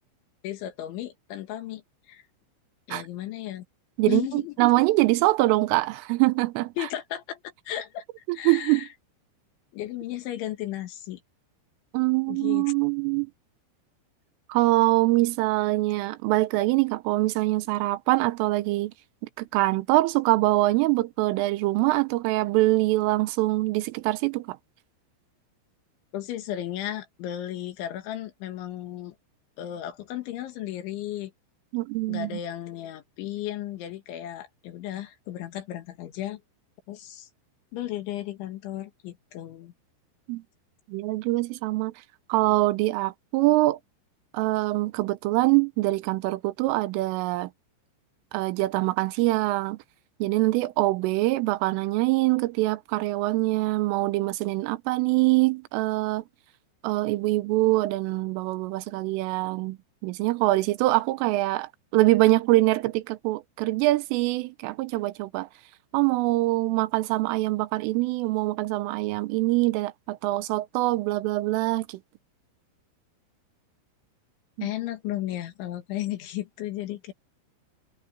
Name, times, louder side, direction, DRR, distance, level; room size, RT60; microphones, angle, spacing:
voice 1, 0.4-1.8 2.1-2.2 2.9-3.6 4.1-4.7 6.8-8.1 8.3-8.9 9.7-11.2 12.3-12.7 26.1-29.2 29.6-31.3 32.1-36.4 36.9-37.3 37.7-39.7 74.6-77.1, left 13 dB, 70° left, 4.0 m, -34 dB
voice 2, 4.0-6.7 8.5-8.9 11.9-13.3 14.5-18.9 19.4-24.6 31.7-32.4 40.3-40.4 40.9-41.9 42.3-43.8 44.3-47.5 48.3-49.8 50.2-56.3 56.8-59.8 60.0-65.5 65.9-72.0 74.6-74.7, right 19 dB, 85° right, 3.4 m, -24 dB
omnidirectional pair, 5.7 m